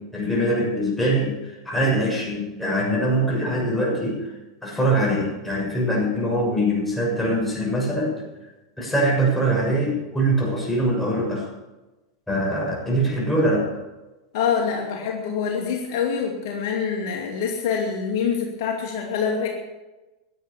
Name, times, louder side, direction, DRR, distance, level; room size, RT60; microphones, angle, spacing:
voice 1, 0.0-4.3 4.6-8.5 8.8-11.5 12.3-13.7, right 1 dB, 5° left, -3 dB, 6.9 m, -23 dB
voice 2, 14.3-19.5, left 6 dB, 60° left, 0 dB, 2.6 m, -25 dB
15.5 x 11.0 x 7.1 m, 1.1 s
figure-of-eight pair, 90°, 2 cm